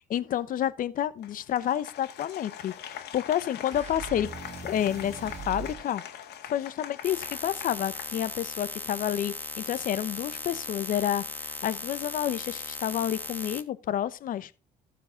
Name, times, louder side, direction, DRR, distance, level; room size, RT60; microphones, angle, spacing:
voice 1, 0.1-4.3 4.6-6.0 6.5-14.5, left 10 dB, 55° left, 0.8 m, -29 dB
Applause, 1.2-8.8, left 10 dB, 75° left, 1.9 m, -43 dB
sound 1, 3.7-5.9, right 6 dB, 40° right, 1.6 m, -41 dB
sound 2, 7.0-13.6, left 2 dB, 10° left, 1.7 m, -38 dB
14.0 x 4.9 x 6.4 m
cardioid pair, 110°, 17 cm